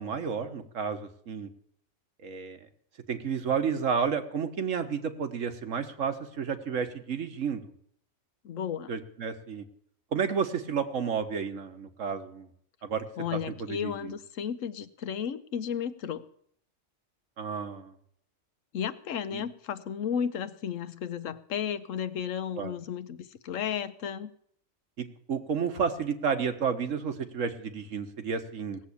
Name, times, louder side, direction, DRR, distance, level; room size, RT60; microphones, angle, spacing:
voice 1, 0.0-1.5 2.2-2.6 3.1-7.7 8.9-9.6 10.1-12.5 12.8-13.0 13.3-14.1 17.4-17.9 19.3-19.4 22.6-22.7 25.0-28.8, right 6 dB, 80° right, 8 dB, 1.6 m, -31 dB
voice 2, 8.4-8.9 13.2-16.2 18.7-24.3, left 8 dB, 90° left, 13 dB, 1.2 m, -33 dB
17.5 x 7.5 x 8.4 m, 0.66 s
omnidirectional pair, 1.3 m